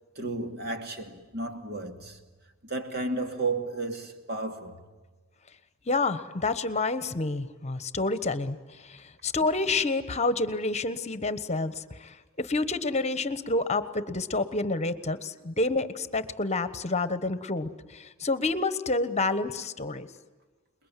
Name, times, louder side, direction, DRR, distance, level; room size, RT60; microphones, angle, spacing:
voice 1, 0.2-2.2 2.6-4.8, right 3 dB, 50° right, 2.7 m, -33 dB
voice 2, 5.9-20.1, left 3 dB, 35° left, 1.3 m, -29 dB
28.0 x 21.5 x 9.2 m
head